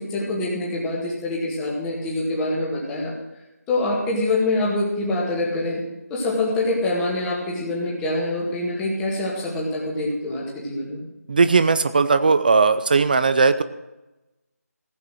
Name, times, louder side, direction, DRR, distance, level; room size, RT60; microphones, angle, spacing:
voice 1, 0.0-3.1 3.7-5.8 6.1-11.1, left 2 dB, 10° left, -3 dB, 2.0 m, -25 dB
voice 2, 11.3-13.6, right 4 dB, 35° right, 13 dB, 0.5 m, -18 dB
15.5 x 8.2 x 6.3 m, 1.0 s
figure-of-eight pair, 160°, 9 cm